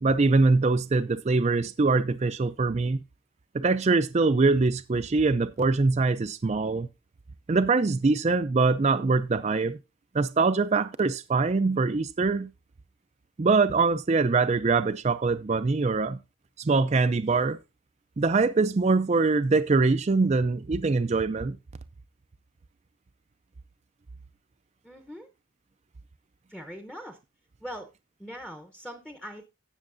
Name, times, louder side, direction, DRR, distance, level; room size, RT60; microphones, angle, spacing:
voice 1, 0.0-3.0 3.5-6.9 7.5-9.8 10.1-12.5 13.4-16.2 16.6-17.6 18.2-21.6, right 3 dB, 30° right, 0.4 m, -23 dB
voice 2, 24.8-25.3 26.5-27.2 27.6-27.9 28.2-29.5, equal, 5° left, 0.8 m, -41 dB
17.0 x 6.4 x 2.6 m
head